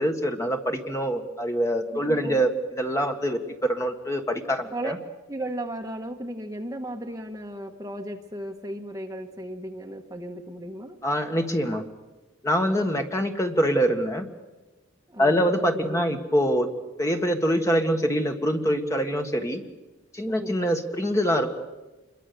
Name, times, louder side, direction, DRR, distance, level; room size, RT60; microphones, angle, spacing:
voice 1, 0.0-5.0 11.0-11.8 12.4-14.2 15.2-16.7 17.0-19.6 20.1-21.5, equal, 15° left, 4 dB, 1.6 m, -24 dB
voice 2, 1.9-2.4 4.7-5.0 5.3-11.0 15.1-15.5 15.7-16.1 20.3-20.6, right 1 dB, 15° right, 3 dB, 1.4 m, -35 dB
27.0 x 22.5 x 7.0 m, 1.1 s
head